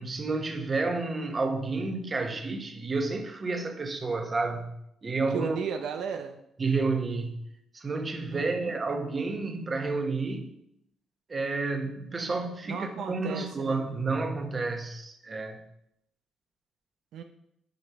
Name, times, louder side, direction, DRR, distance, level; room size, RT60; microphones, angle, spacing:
voice 1, 0.0-4.7 5.0-5.6 6.6-7.3 7.7-10.5 11.3-15.6, right 3 dB, 35° right, 1.3 m, -30 dB
voice 2, 5.3-6.4 8.3-8.7 12.6-13.8 17.1-17.2, right 7 dB, 75° right, 0.6 m, -35 dB
7.9 x 5.1 x 5.8 m
cardioid pair, 90°, 0 cm